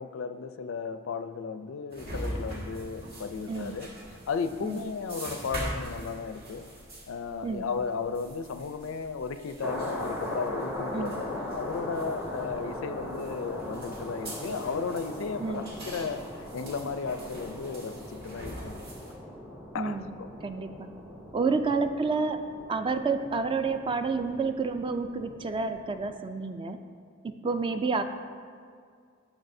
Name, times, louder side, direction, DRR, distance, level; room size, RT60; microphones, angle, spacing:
voice 1, 0.0-3.9 4.3-6.7 7.1-18.8 19.7-20.3 21.4-21.6, left 5 dB, 70° left, 10 dB, 0.4 m, -35 dB
sound 1, 1.9-19.1, equal, 55° right, 1.8 m, -43 dB
sound 2, 9.6-26.1, left 1 dB, 10° right, 0.7 m, -40 dB
voice 2, 19.7-20.1 20.4-20.9 21.3-22.4 22.7-26.8 27.2-28.0, right 4 dB, 25° right, 8 dB, 0.3 m, -29 dB
10.5 x 6.2 x 2.6 m, 2.2 s
head